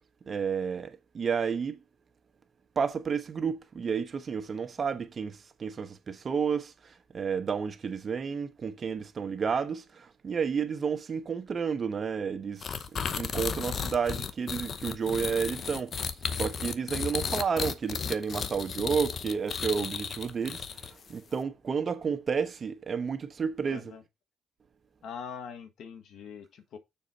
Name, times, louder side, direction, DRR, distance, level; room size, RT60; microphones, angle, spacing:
voice 1, 0.3-1.8 2.7-23.9, right 6 dB, 45° right, 1.1 m, -31 dB
sound 1, 12.6-21.1, left 6 dB, 50° left, 0.8 m, -34 dB
voice 2, 23.7-24.0 25.0-26.8, left 6 dB, 70° left, 1.4 m, -42 dB
7.1 x 4.0 x 5.7 m
cardioid pair, 90°, 0 cm